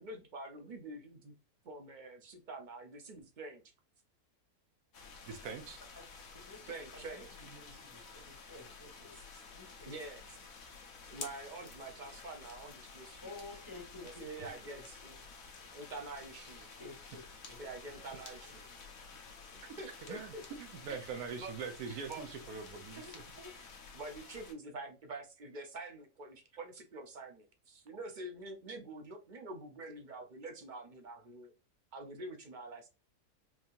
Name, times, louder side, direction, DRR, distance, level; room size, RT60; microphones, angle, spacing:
voice 1, 0.0-1.3 1.6-3.6 6.7-7.3 9.8-10.4 11.1-13.3 14.0-15.2 15.7-16.7 17.6-18.7 19.5-20.4 20.9-21.0 21.4-21.5 21.9-22.3 23.0-23.5 23.9-31.5 31.9-32.9, right 2 dB, 45° right, 0.7 m, -46 dB
sound 1, 4.9-24.5, left 4 dB, 70° left, 1.3 m, -52 dB
voice 2, 5.3-5.8 14.4-14.5 19.6-19.7 20.1-20.3 20.6-23.2, right 5 dB, 80° right, 1.2 m, -43 dB
voice 3, 6.3-9.1 9.5-10.0 13.2-14.8 16.6-18.2 18.4-18.5, left 2 dB, 15° left, 1.0 m, -52 dB
sound 2, 11.2-20.8 21.2-24.3, left 4 dB, 45° left, 0.8 m, -57 dB
4.5 x 2.8 x 2.5 m
omnidirectional pair, 1.6 m